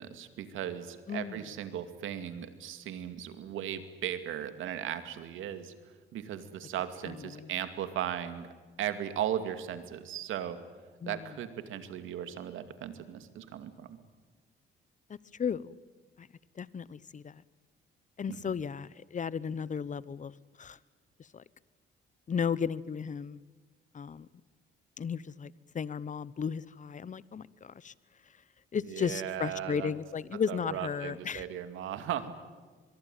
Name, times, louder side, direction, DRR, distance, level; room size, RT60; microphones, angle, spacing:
voice 1, 0.0-8.5 8.8-10.6 11.1-14.0 18.3-18.6 28.9-29.9 30.5-32.3, right 10 dB, 85° right, 10 dB, 2.4 m, -37 dB
voice 2, 1.1-1.4 7.1-7.5 11.0-11.2 15.4-15.8 16.2-16.3 16.6-17.4 18.2-20.8 21.3-21.4 22.3-23.4 23.9-24.3 25.0-27.9 28.7-31.4, left 7 dB, 40° left, 20 dB, 0.9 m, -35 dB
23.5 x 23.0 x 9.2 m, 1.4 s
cardioid pair, 90°, 20 cm